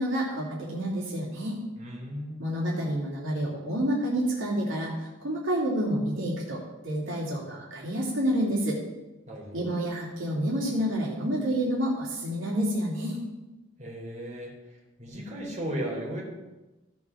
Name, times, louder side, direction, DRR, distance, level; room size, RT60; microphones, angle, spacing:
voice 1, 0.0-1.6 2.4-8.8 9.5-13.2, equal, 70° right, -4 dB, 2.5 m, -29 dB
voice 2, 1.8-2.3 9.3-9.7 13.8-14.5 15.0-16.2, right 1 dB, 35° right, -4 dB, 3.4 m, -35 dB
14.5 x 5.3 x 6.1 m, 1.1 s
head